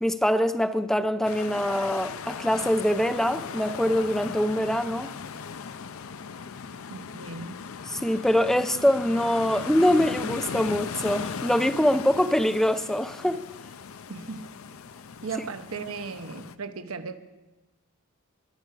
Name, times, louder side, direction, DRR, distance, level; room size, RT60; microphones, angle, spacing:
voice 1, 0.0-5.1 7.9-13.4, equal, ahead, 0.4 m, -24 dB
sound 1, 1.2-16.6, left 6 dB, 70° left, 0.5 m, -38 dB
voice 2, 6.9-7.6 14.1-14.4 15.2-17.2, right 4 dB, 75° right, 0.9 m, -36 dB
21.0 x 8.1 x 4.7 m
head